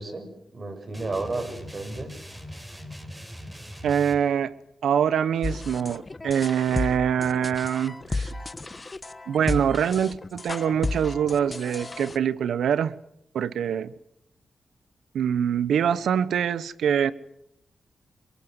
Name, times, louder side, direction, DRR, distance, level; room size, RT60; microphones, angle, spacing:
voice 1, 0.0-2.1, right 3 dB, 45° right, 6.5 m, -33 dB
sound 1, 0.9-4.2, equal, 10° right, 5.0 m, -41 dB
voice 2, 3.8-4.5 4.8-8.3 9.3-13.0 13.3-13.9 15.1-17.1, right 8 dB, 85° right, 0.9 m, -24 dB
sound 2, 5.4-12.2, left 3 dB, 35° left, 1.3 m, -33 dB
24.0 x 22.5 x 7.8 m
cardioid pair, 55°, 0 cm